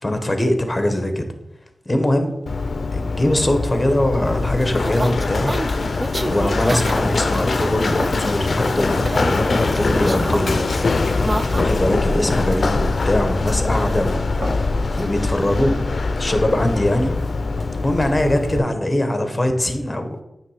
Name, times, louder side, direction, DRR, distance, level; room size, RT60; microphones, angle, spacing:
voice 1, 0.0-1.3 1.9-2.3 2.9-5.5 6.2-11.0 11.5-14.2 15.0-15.7 16.2-17.1 17.8-20.2, left 1 dB, 20° left, 6 dB, 0.9 m, -21 dB
Run, 2.5-18.6, left 3 dB, 60° left, 0.4 m, -23 dB
sound 1, 3.7-18.4, equal, 40° right, 2.3 m, -44 dB
sound 2, 4.2-11.6, right 1 dB, 20° right, 0.4 m, -30 dB
9.1 x 3.1 x 4.8 m, 0.92 s
wide cardioid pair, 95°, 0 cm